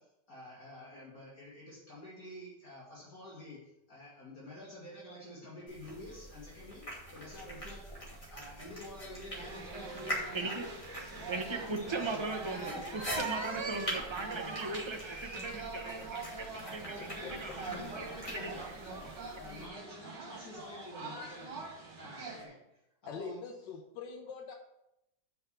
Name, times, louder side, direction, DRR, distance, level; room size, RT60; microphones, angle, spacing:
voice 1, 0.0-8.0 8.3-10.2 11.3-12.9 14.0-14.1 15.0-15.2 16.6-21.5 22.0-22.6 23.2-23.4, left 1 dB, 50° left, -7 dB, 2.4 m, -49 dB
sound 1, 5.7-19.7, equal, 20° left, 2.4 m, -44 dB
sound 2, 9.3-22.4, right 3 dB, 75° right, 2.3 m, -45 dB
voice 2, 10.3-10.7 11.3-16.2 16.5-16.8 17.1-18.7 19.0-19.1, right 3 dB, 30° right, 3 dB, 0.5 m, -38 dB
voice 3, 23.1-24.5, left 5 dB, 85° left, 0 dB, 1.5 m, -43 dB
5.9 x 5.4 x 6.9 m, 0.86 s
omnidirectional pair, 1.9 m